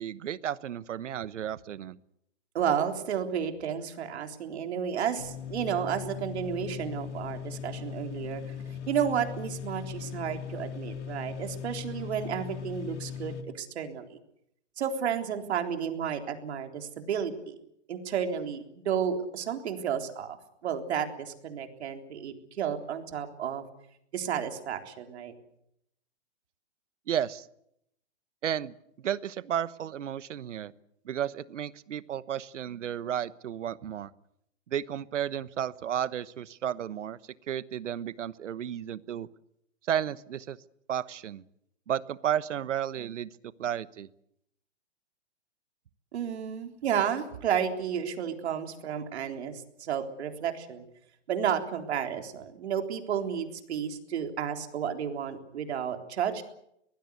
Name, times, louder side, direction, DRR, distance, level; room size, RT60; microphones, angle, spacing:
voice 1, 0.0-2.0 27.1-27.4 28.4-28.7 29.0-30.7 31.0-34.1 34.7-37.2 37.5-39.3 39.9-40.6 40.9-41.4 41.9-43.3 43.6-44.1, right 10 dB, 80° right, 17 dB, 1.2 m, -33 dB
voice 2, 2.5-8.4 8.9-14.1 14.8-17.6 17.9-20.4 20.6-23.6 24.1-25.3 46.1-50.8 51.3-56.4, right 8 dB, 65° right, 5 dB, 3.8 m, -32 dB
sound 1, 5.2-13.4, left 8 dB, 70° left, 2.9 m, -39 dB
24.0 x 19.5 x 8.4 m, 0.77 s
hypercardioid pair, 155°, 36 cm